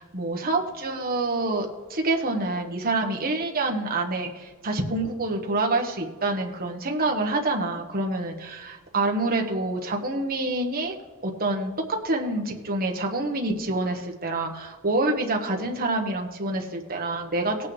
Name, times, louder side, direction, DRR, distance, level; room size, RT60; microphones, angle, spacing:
voice 1, 0.0-10.9 11.2-11.7 12.0-17.7, right 2 dB, 45° right, 2 dB, 1.3 m, -27 dB
18.0 x 8.4 x 3.3 m, 1.4 s
head